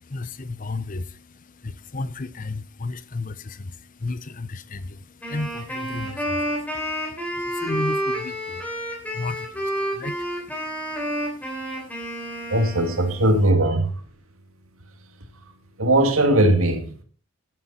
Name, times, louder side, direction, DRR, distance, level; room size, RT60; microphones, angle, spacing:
voice 1, 0.0-12.5, left 3 dB, 40° left, 0.7 m, -35 dB
Wind instrument woodwind instrument, 5.2-13.4, equal, 5° left, 3.5 m, -29 dB
voice 2, 12.5-13.9 15.8-17.0, right 1 dB, 85° right, 2.3 m, -19 dB
13.0 x 9.1 x 4.2 m
head